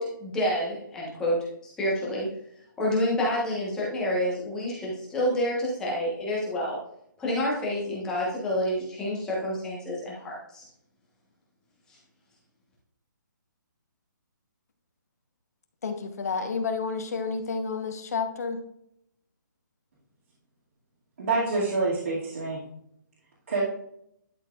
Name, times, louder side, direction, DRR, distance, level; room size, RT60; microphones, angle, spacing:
voice 1, 0.0-1.4 1.6-2.3 2.8-6.8 7.2-10.6, left 1 dB, 5° left, -5 dB, 1.2 m, -28 dB
voice 2, 15.8-18.6, left 5 dB, 50° left, 7 dB, 1.1 m, -30 dB
voice 3, 21.2-22.6 23.5-23.6, right 3 dB, 50° right, -7 dB, 2.3 m, -27 dB
11.5 x 4.5 x 2.5 m, 0.73 s
hypercardioid pair, 170°, 11 cm